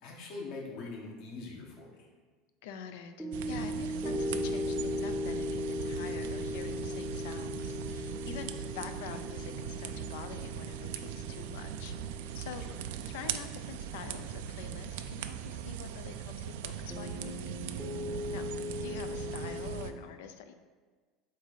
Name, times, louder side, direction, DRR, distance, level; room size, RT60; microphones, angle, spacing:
voice 1, 0.0-2.1 8.7-8.8 12.7-12.8 18.4-18.6, left 3 dB, 60° left, -1 dB, 1.4 m, -43 dB
voice 2, 2.6-12.6 13.1-17.5 18.3-18.4 18.8-20.5, left 8 dB, 80° left, 8 dB, 0.5 m, -46 dB
sound 1, 3.2-15.6 16.9-19.9, left 1 dB, ahead, 0.7 m, -39 dB
sound 2, 3.3-19.9, right 9 dB, 85° right, 0.4 m, -40 dB
7.7 x 2.7 x 5.0 m, 1.4 s
supercardioid pair, 145°, 0 cm